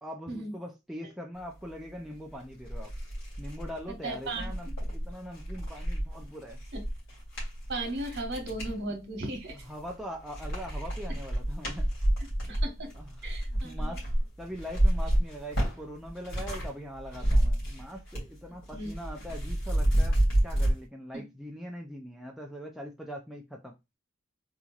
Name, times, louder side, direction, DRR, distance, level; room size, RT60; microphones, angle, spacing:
voice 1, 0.0-2.9 3.4-6.6 9.7-11.9 12.4-12.5 12.9-14.0 14.4-23.7, equal, ahead, 0.4 m, -42 dB
sound 1, 2.1-2.2 2.6-8.8 9.3-10.0 10.3-16.7 17.0-18.4 18.6-20.7, right 1 dB, 70° left, 2.1 m, -29 dB
voice 2, 4.0-4.7 6.7-6.8 7.7-9.6 12.5-12.7 13.2-13.9 18.7-18.9, right 2 dB, 55° right, 1.3 m, -36 dB
3.9 x 3.1 x 2.3 m
head